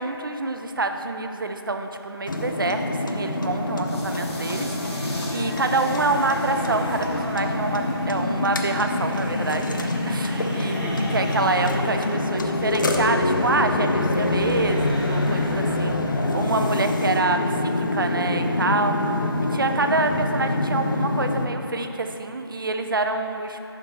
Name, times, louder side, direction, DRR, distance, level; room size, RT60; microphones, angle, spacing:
voice 1, 0.0-23.6, right 3 dB, 55° right, 6 dB, 0.4 m, -27 dB
sound 1, 2.3-21.5, left 2 dB, 50° left, 0.5 m, -25 dB
sound 2, 3.8-7.9, left 1 dB, 85° left, 1.2 m, -42 dB
sound 3, 4.0-17.2, equal, 20° right, 1.2 m, -36 dB
5.8 x 5.2 x 4.4 m, 2.9 s
figure-of-eight pair, 155°, 14 cm